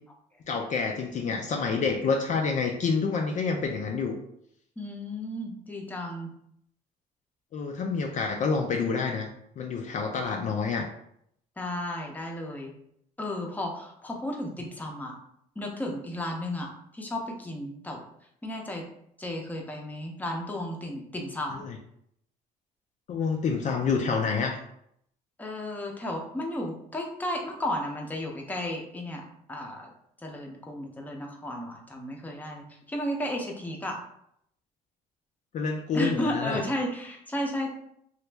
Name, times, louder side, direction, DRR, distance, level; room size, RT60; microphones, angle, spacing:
voice 1, 0.5-4.2 7.5-9.3 9.6-10.9 21.5-21.8 23.1-24.6 35.5-36.6, left 5 dB, 45° left, 2 dB, 0.4 m, -28 dB
voice 2, 4.8-6.3 11.6-12.7 13.2-15.1 15.6-16.7 16.9-18.0 18.4-18.8 19.2-21.6 25.4-29.9 30.2-34.0 35.9-37.7, left 1 dB, 10° left, 1 dB, 0.6 m, -33 dB
3.0 x 2.4 x 3.3 m, 0.72 s
cardioid pair, 110°, 17 cm